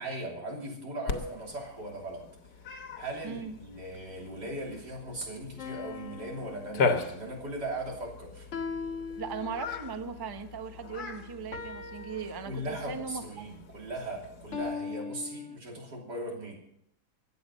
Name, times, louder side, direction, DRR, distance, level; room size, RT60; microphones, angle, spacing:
voice 1, 0.0-2.2 3.0-8.5 12.5-16.6, right 1 dB, 85° right, -1 dB, 3.8 m, -38 dB
Cat, 1.1-14.7, left 4 dB, 65° left, 1.6 m, -38 dB
voice 2, 3.2-3.6 9.2-13.4, right 5 dB, 25° right, 9 dB, 0.5 m, -38 dB
sound 1, 5.6-7.4 8.5-10.0 11.5-13.1 14.5-15.6, left 5 dB, 50° left, 1.3 m, -40 dB
22.0 x 8.4 x 5.4 m, 0.76 s
omnidirectional pair, 1.8 m